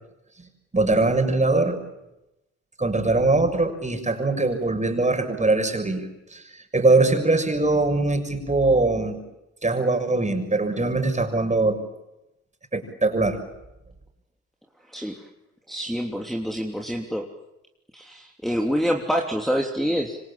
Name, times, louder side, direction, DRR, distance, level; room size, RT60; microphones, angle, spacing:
voice 1, 0.7-1.8 2.8-6.4 6.7-9.2 9.6-11.8 12.7-13.4, right 2 dB, 20° right, 6 dB, 6.6 m, -22 dB
voice 2, 15.7-17.3 17.9-20.2, equal, ahead, 0 dB, 3.3 m, -26 dB
27.5 x 25.5 x 8.6 m, 0.94 s
hypercardioid pair, 55°, 33 cm